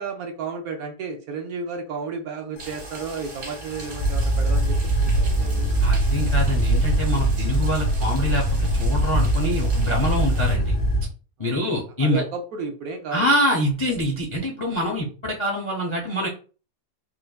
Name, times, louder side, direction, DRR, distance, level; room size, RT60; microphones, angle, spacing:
voice 1, 0.0-4.8 5.1-5.8 10.1-10.3 11.4-11.6 12.0-13.3, right 5 dB, 70° right, 4 dB, 1.0 m, -33 dB
sound 1, 2.6-11.0, right 1 dB, 90° left, 1.3 m, -22 dB
sound 2, 2.6-10.6, right 3 dB, 85° right, 1.7 m, -42 dB
voice 2, 5.8-8.4 8.8-10.8 11.4-12.2 13.1-16.3, left 1 dB, 50° left, -2 dB, 0.3 m, -25 dB
4.4 x 2.6 x 2.2 m, 0.36 s
omnidirectional pair, 1.8 m